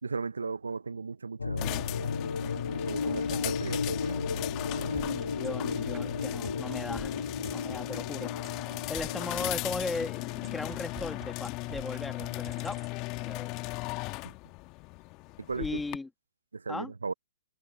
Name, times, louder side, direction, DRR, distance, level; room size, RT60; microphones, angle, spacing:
voice 1, 0.0-1.8 2.7-4.4 4.7-5.1 14.2-14.3 15.4-15.8 16.5-17.1, right 4 dB, 80° right, 0.8 m, -37 dB
sound 1, 1.4-10.5, left 5 dB, 80° left, 0.3 m, -34 dB
sound 2, 1.6-16.0, left 24 dB, 35° left, 1.7 m, -37 dB
voice 2, 3.0-3.5 4.9-7.2 7.5-8.3 8.9-12.8 13.2-13.5 15.6-16.1 16.7-16.9, left 3 dB, 5° left, 2.4 m, -37 dB
sound 3, 4.9-12.9, right 8 dB, 15° right, 4.2 m, -47 dB
figure-of-eight pair, 125°, 0 cm